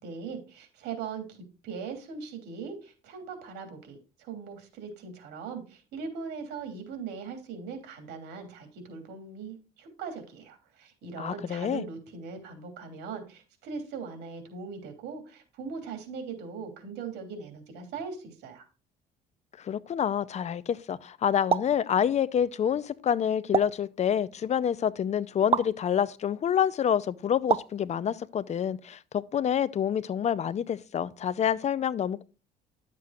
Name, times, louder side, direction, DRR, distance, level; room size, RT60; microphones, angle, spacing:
voice 1, 0.0-18.6, right 5 dB, 80° right, 3.0 m, -40 dB
voice 2, 11.2-11.8 19.6-32.2, left 9 dB, 40° left, 0.6 m, -27 dB
sound 1, 21.5-21.8 23.5-23.9 25.5-25.8 27.5-27.8, right 7 dB, 35° right, 0.5 m, -26 dB
11.5 x 7.5 x 2.4 m
cardioid pair, 110°, 17 cm